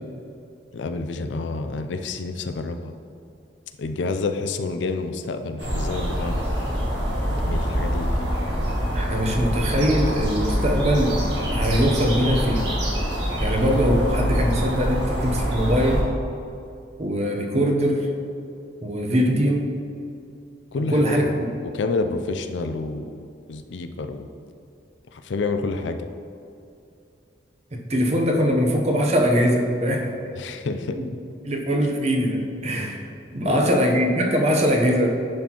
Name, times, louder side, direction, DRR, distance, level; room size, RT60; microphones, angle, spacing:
voice 1, 0.7-2.9 3.8-6.4 7.3-8.3 20.7-21.3 21.6-24.3 25.1-26.0 30.4-31.0 33.4-33.7, left 3 dB, 80° left, 8 dB, 0.4 m, -29 dB
sound 1, 5.6-16.0, equal, 80° right, 1.5 m, -25 dB
voice 2, 8.9-12.7 13.4-16.0 17.0-18.1 18.8-19.7 20.9-21.2 27.7-30.1 31.4-35.1, equal, 35° right, 1 dB, 0.8 m, -22 dB
10.5 x 4.3 x 2.9 m, 2.6 s
head